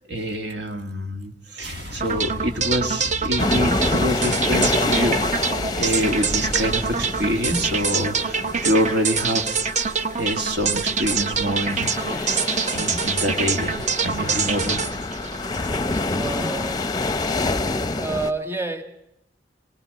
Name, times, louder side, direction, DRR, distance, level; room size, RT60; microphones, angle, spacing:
voice 1, 0.1-5.5 5.7-12.3 12.7-14.8, equal, 70° right, 5 dB, 1.9 m, -26 dB
sound 1, 1.6-7.8, left 1 dB, 90° right, 7.7 m, -35 dB
sound 2, 2.0-16.1, right 5 dB, 40° right, 0.8 m, -25 dB
sound 3, 3.4-18.3, left 2 dB, 25° left, 0.7 m, -27 dB
voice 2, 16.1-17.1 17.9-18.8, right 3 dB, 15° right, 5 dB, 1.6 m, -29 dB
23.0 x 18.5 x 6.6 m, 0.84 s
head